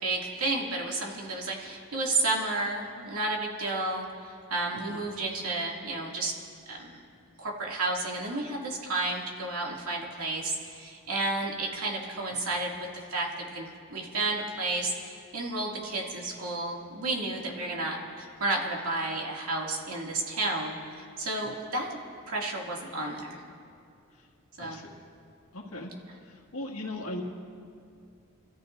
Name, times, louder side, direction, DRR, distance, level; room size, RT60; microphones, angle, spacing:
voice 1, 0.0-6.3 6.7-7.0 7.4-22.0 22.3-23.4 24.6-24.8, right 2 dB, 90° right, -2 dB, 2.4 m, -32 dB
voice 2, 4.7-5.0 12.3-12.5 21.3-21.5 24.1-24.3 24.6-25.0 25.5-25.9 26.2-27.2, left 1 dB, 85° left, -1 dB, 2.0 m, -40 dB
27.5 x 14.0 x 2.6 m, 2.4 s
head